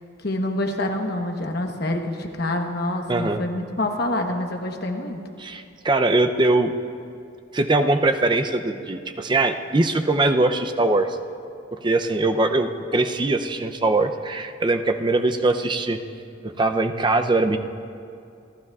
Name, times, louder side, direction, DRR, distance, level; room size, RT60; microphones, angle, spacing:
voice 1, 0.2-5.2, left 1 dB, 55° left, 3 dB, 1.1 m, -26 dB
voice 2, 3.1-3.4 5.4-6.7 7.5-11.1 11.7-16.0 16.4-17.6, right 2 dB, 25° right, 7 dB, 0.5 m, -21 dB
27.5 x 12.5 x 2.4 m, 2.5 s
head